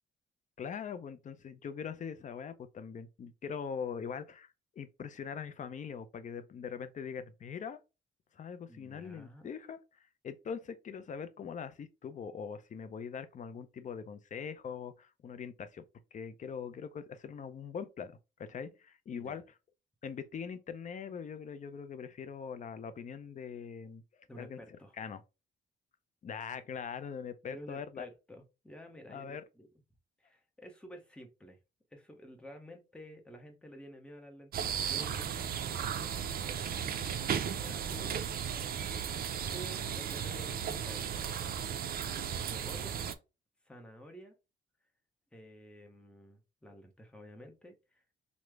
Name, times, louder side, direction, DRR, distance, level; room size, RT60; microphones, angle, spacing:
voice 1, 0.6-4.5 4.8-7.8 8.3-9.8 10.2-15.8 16.1-19.4 20.0-24.0 24.4-24.6 25.0-25.2 26.2-28.1 29.1-29.4, left 6 dB, 40° left, 0.5 m, -42 dB
voice 2, 8.7-9.6 19.1-19.4 24.3-25.0 27.4-29.7 30.2-31.6 31.9-36.3 37.5-38.1 39.5-41.1 42.4-43.0 43.6-44.3 45.3-48.0, equal, 5° left, 0.8 m, -51 dB
sound 1, 34.5-43.1, right 8 dB, 50° right, 0.4 m, -35 dB
3.1 x 2.1 x 3.4 m
cardioid pair, 90°, 20 cm